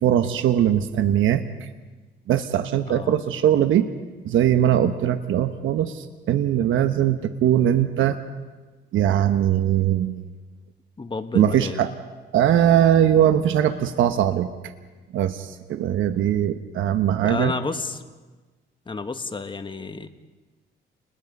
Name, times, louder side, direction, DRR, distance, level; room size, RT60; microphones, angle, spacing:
voice 1, 0.0-1.4 2.3-3.9 4.2-8.2 8.9-10.2 11.3-11.9 12.3-14.5 15.1-17.5, right 10 dB, 80° right, 9 dB, 1.1 m, -20 dB
voice 2, 2.7-3.1 11.0-11.8 17.2-18.0 18.8-20.1, left 4 dB, 25° left, 8 dB, 1.7 m, -31 dB
30.0 x 20.5 x 5.4 m, 1.3 s
cardioid pair, 90°, 20 cm